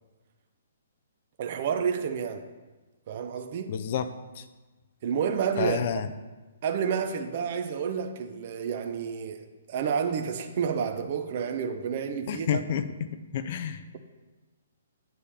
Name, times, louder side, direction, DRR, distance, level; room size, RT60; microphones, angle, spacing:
voice 1, 1.4-2.5 3.1-3.7 5.0-5.8 6.6-12.6, right 7 dB, 30° right, 0.5 m, -30 dB
voice 2, 3.7-4.1 4.4-4.5 5.6-6.1 12.3-13.8, left 8 dB, 30° left, 0.4 m, -30 dB
9.0 x 6.9 x 3.4 m
hypercardioid pair, 180°, 0 cm